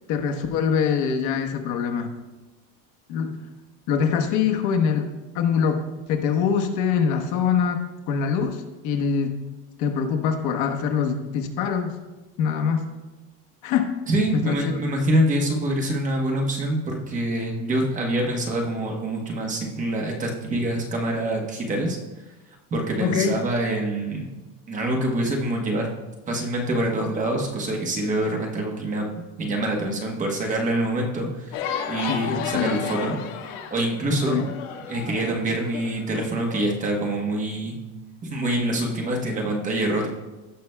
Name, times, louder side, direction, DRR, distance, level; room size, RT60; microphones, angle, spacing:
voice 1, 0.1-2.1 3.1-3.4 3.9-5.1 5.3-9.3 9.8-12.0 12.4-12.9 13.6-13.8 14.3-14.8 23.0-23.4 32.1-32.8 34.3-34.4, left 6 dB, 55° left, 5 dB, 1.0 m, -24 dB
voice 2, 14.1-22.0 22.7-24.3 24.7-25.9 26.3-33.2 33.7-34.5 34.9-37.8 38.3-40.1, right 1 dB, 20° right, 1 dB, 1.1 m, -25 dB
sound 1, 31.5-36.6, left 8 dB, 80° left, 1.3 m, -33 dB
17.0 x 5.8 x 2.2 m, 1.1 s
cardioid pair, 170°, 35 cm